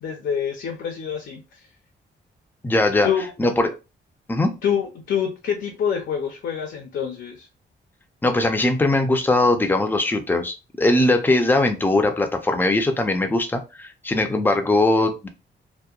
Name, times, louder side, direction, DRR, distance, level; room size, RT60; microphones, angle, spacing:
voice 1, 0.0-1.7 3.0-3.3 4.6-7.5, left 8 dB, 65° left, 3 dB, 0.5 m, -26 dB
voice 2, 2.6-3.1 3.4-3.8 4.3-4.5 8.2-15.3, left 2 dB, 10° left, 6 dB, 0.4 m, -20 dB
2.8 x 2.1 x 2.3 m, 0.28 s
wide cardioid pair, 130°, 19 cm